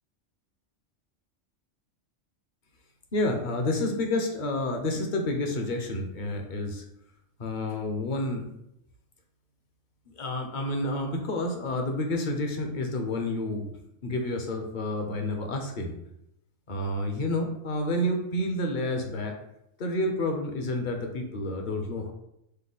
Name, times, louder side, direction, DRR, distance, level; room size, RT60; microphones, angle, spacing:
voice 1, 3.1-6.8 7.4-8.5 10.2-13.7 14.0-15.9 16.7-19.3 19.8-22.1, left 1 dB, 45° left, 3 dB, 0.7 m, -29 dB
5.4 x 2.1 x 3.9 m, 0.79 s
omnidirectional pair, 1.3 m